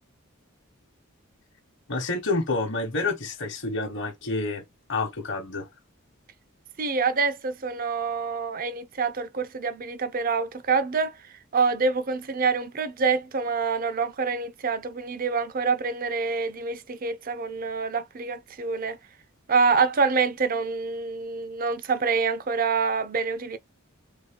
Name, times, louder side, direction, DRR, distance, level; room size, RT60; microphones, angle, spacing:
voice 1, 1.9-4.6 4.9-5.7, left 3 dB, 60° left, 1.1 m, -28 dB
voice 2, 6.8-19.0 19.5-23.6, right 5 dB, 45° right, 0.6 m, -26 dB
3.9 x 3.1 x 3.6 m
head